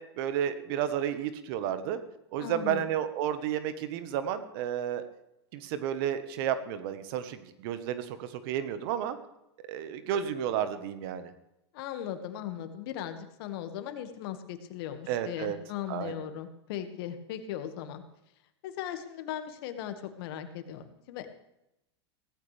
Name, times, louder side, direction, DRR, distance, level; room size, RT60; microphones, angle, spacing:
voice 1, 0.0-2.0 2.3-5.0 5.5-9.2 9.7-11.3 15.1-15.6 15.9-16.1, right 9 dB, 55° right, 11 dB, 1.4 m, -32 dB
voice 2, 2.4-2.9 11.7-18.0 18.6-21.3, left 10 dB, 60° left, 8 dB, 1.9 m, -38 dB
17.0 x 15.0 x 3.5 m, 0.84 s
hypercardioid pair, 105°, 14 cm